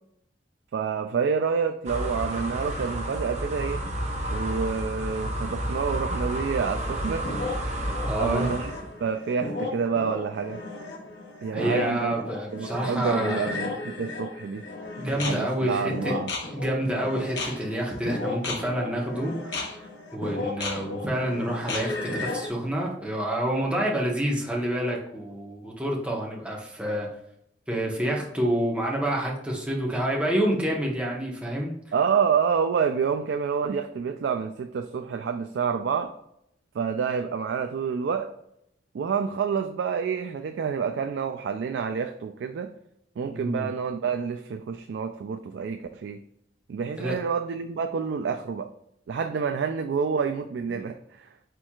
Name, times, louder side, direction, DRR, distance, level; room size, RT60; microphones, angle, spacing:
voice 1, 0.7-3.8 4.3-7.3 7.7-8.7 9.0-10.6 11.4-12.1 12.5-14.6 15.1-16.3 31.9-36.1 36.7-38.3 38.9-42.7 43.2-46.2 46.7-48.7 49.1-51.3, right 6 dB, 70° right, 7 dB, 0.3 m, -28 dB
sound 1, 1.9-8.9, right 1 dB, 40° right, 0.9 m, -31 dB
sound 2, 6.6-22.5, left 3 dB, 70° left, 0.9 m, -34 dB
voice 2, 8.0-8.5 11.5-13.6 15.0-16.1 16.5-27.1 27.7-31.7 43.2-43.7 47.0-47.1, right 1 dB, 5° right, -2 dB, 1.0 m, -28 dB
4.5 x 4.3 x 2.4 m, 0.76 s
head